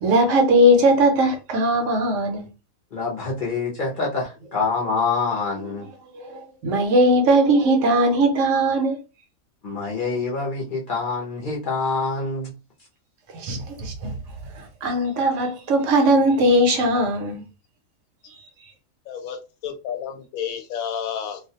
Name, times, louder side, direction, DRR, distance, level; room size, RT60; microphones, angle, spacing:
voice 1, 0.0-2.5 6.1-9.0 13.3-14.1 14.5-17.4, right 1 dB, 70° right, 0.8 m, -19 dB
voice 2, 2.9-5.9 9.6-12.5, left 4 dB, 50° left, 0.6 m, -26 dB
voice 3, 19.1-19.4 19.6-21.4, left 8 dB, 75° left, 1.0 m, -30 dB
2.4 x 2.2 x 2.7 m
omnidirectional pair, 1.5 m